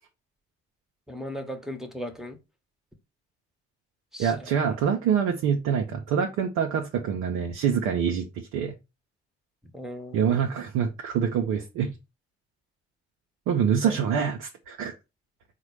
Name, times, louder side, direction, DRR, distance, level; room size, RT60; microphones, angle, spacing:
voice 1, 1.1-2.4 4.1-4.8 9.7-10.3 13.8-14.0, equal, ahead, 6 dB, 1.0 m, -37 dB
voice 2, 4.2-8.7 10.1-11.9 13.5-14.9, right 7 dB, 70° right, 3 dB, 0.7 m, -25 dB
4.0 x 2.2 x 4.6 m, 0.25 s
hypercardioid pair, 40°, 32 cm